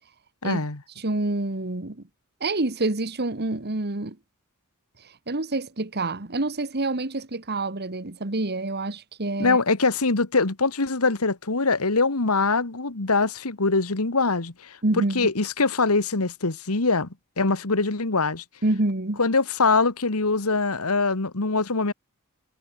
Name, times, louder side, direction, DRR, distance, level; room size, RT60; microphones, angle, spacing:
voice 1, 0.4-0.8 9.4-17.1 17.4-18.4 19.2-21.9, left 3 dB, 75° left, 1.8 m, -23 dB
voice 2, 1.0-2.0 2.4-4.2 5.3-9.6 14.8-15.3 18.6-19.2, right 2 dB, 50° right, 1.8 m, -27 dB
head